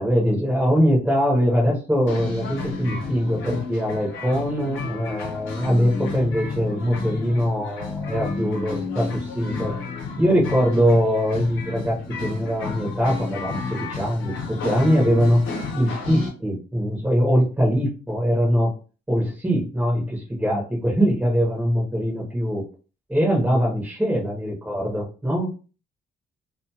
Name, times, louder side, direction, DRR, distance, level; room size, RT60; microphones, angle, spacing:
voice 1, 0.0-9.7 10.2-15.4 15.7-18.7 19.1-22.6 23.1-25.5, equal, 10° right, -4 dB, 0.9 m, -22 dB
sound 1, 2.1-16.3, left 4 dB, 85° left, 0.8 m, -32 dB
2.4 x 2.3 x 2.8 m, 0.35 s
cardioid pair, 90°, 20 cm